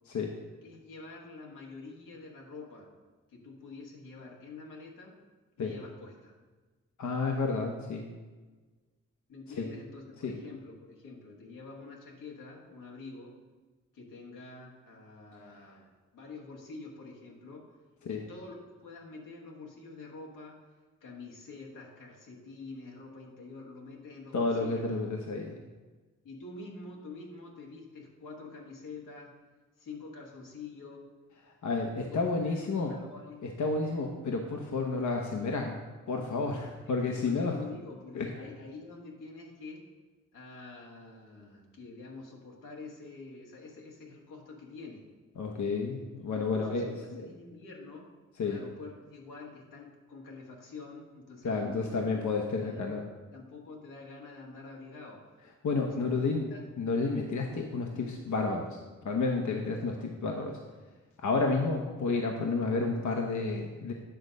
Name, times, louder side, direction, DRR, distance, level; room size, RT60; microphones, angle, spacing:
voice 1, 0.6-2.9 3.3-5.2 5.6-6.3 9.3-13.4 13.9-15.8 16.1-17.7 18.0-20.6 21.0-24.9 26.2-29.3 29.8-31.1 32.1-33.4 37.2-39.9 40.3-45.0 46.2-48.1 48.4-52.8 53.3-55.3 55.8-56.7, left 3 dB, 90° left, -2 dB, 1.6 m, -47 dB
voice 2, 7.0-8.1 9.6-9.7 10.2-10.4 18.1-18.2 24.3-25.6 31.4-32.9 33.4-35.8 36.1-37.6 38.1-38.3 45.4-47.3 48.4-48.6 51.4-53.1 55.6-56.5 56.8-60.6 61.2-63.9, left 3 dB, 65° left, 1 dB, 0.9 m, -31 dB
8.9 x 3.9 x 6.4 m, 1.3 s
supercardioid pair, 50°, 31 cm